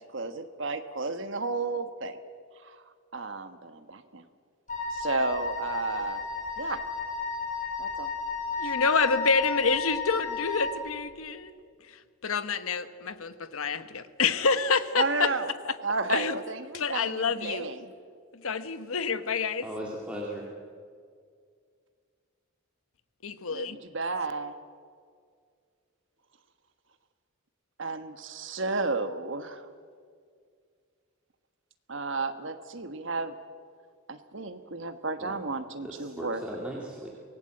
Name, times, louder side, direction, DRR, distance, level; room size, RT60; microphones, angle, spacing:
voice 1, 0.0-2.2 2.6-2.8 3.1-4.2 4.9-6.2 6.6-6.8 7.8-8.1 14.9-15.5 15.8-17.9 23.5-24.5 27.8-29.7 31.9-33.3 34.1-36.4, right 3 dB, 60° right, 9 dB, 1.4 m, -32 dB
Wind instrument woodwind instrument, 4.7-10.8, left 4 dB, 35° left, 5.1 m, -33 dB
voice 2, 8.6-11.6 12.2-15.3 15.6-15.7 16.1-16.4 16.7-17.7 18.3-19.7 23.2-23.8, left 5 dB, 75° left, 12 dB, 1.1 m, -28 dB
voice 3, 19.6-20.5 35.2-35.4 35.8-37.1, equal, 5° right, -3 dB, 2.3 m, -37 dB
25.0 x 18.0 x 7.9 m, 2.1 s
head